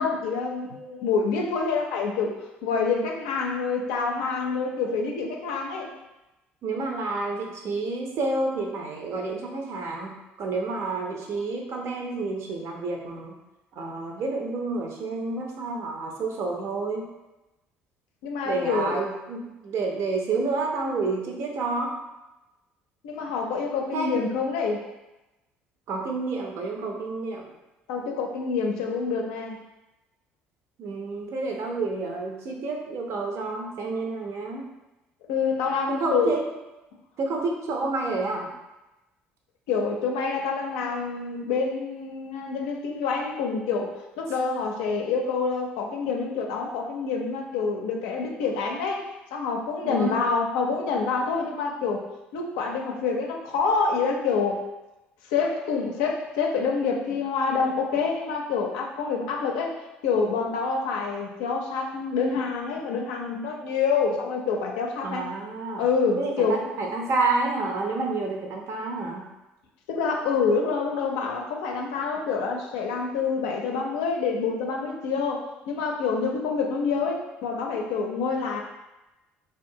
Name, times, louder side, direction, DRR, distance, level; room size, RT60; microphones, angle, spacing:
voice 1, 0.0-2.4 2.6-5.9 18.2-19.0 23.0-24.8 27.9-29.6 35.3-36.4 39.7-49.0 49.3-52.0 52.3-54.6 55.3-59.7 60.0-65.3 65.8-66.6 69.9-78.6, left 5 dB, 75° left, 1 dB, 0.4 m, -27 dB
voice 2, 6.6-13.3 13.7-17.1 18.4-21.9 23.9-24.1 25.9-27.5 30.8-34.6 35.9-36.4 37.2-38.5 49.8-50.1 65.0-65.8 66.2-69.3, right 3 dB, 55° right, 1 dB, 0.6 m, -29 dB
2.5 x 2.3 x 2.7 m, 1.0 s
hypercardioid pair, 60°, 6 cm